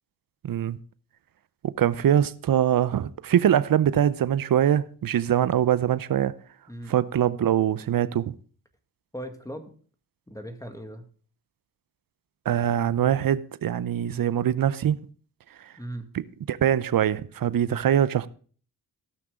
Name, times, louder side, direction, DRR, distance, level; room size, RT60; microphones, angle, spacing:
voice 1, 0.4-0.8 1.6-6.3 6.9-8.3 12.5-15.1 16.5-18.3, right 10 dB, 55° right, 0.7 m, -23 dB
voice 2, 6.7-7.0 9.1-9.7 10.3-11.1 15.8-16.1, right 1 dB, 10° left, 1.8 m, -38 dB
16.5 x 6.0 x 3.7 m
supercardioid pair, 45°, 40 cm